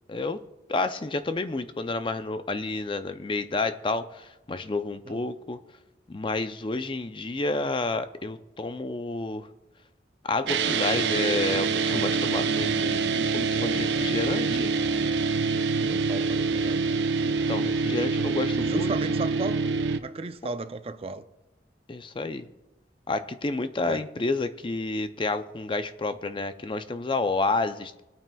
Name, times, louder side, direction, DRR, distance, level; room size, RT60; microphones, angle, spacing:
voice 1, 0.1-0.4 0.7-5.6 6.1-9.5 10.3-14.7 17.5-19.2 21.9-22.5 23.1-28.0, left 3 dB, 30° left, 10 dB, 0.5 m, -30 dB
sound 1, 10.5-20.0, right 4 dB, 80° right, 0.6 m, -25 dB
voice 2, 15.8-17.0 18.6-19.6 20.0-21.2 23.8-24.0, right 3 dB, 35° right, 10 dB, 0.5 m, -35 dB
23.5 x 9.0 x 2.3 m, 1.0 s
head